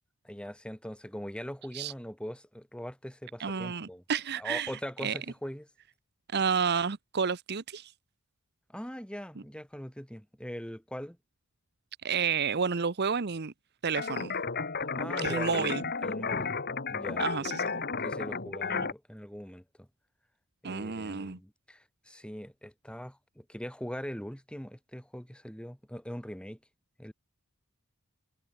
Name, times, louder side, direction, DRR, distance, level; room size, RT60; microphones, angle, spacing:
voice 1, 0.2-4.0 4.4-5.7 8.7-11.2 15.0-15.7 16.0-16.5 16.9-17.5 18.0-19.9 20.6-26.6 27.0-27.1, equal, 5° left, 3.9 m, -41 dB
voice 2, 3.4-4.7 5.0-5.2 6.3-7.9 12.0-13.5 13.8-14.3 15.2-15.8 17.2-17.8 18.7-18.9 20.6-21.4, right 6 dB, 50° right, 0.8 m, -30 dB
sound 1, 14.0-18.9, left 5 dB, 45° left, 2.3 m, -33 dB
head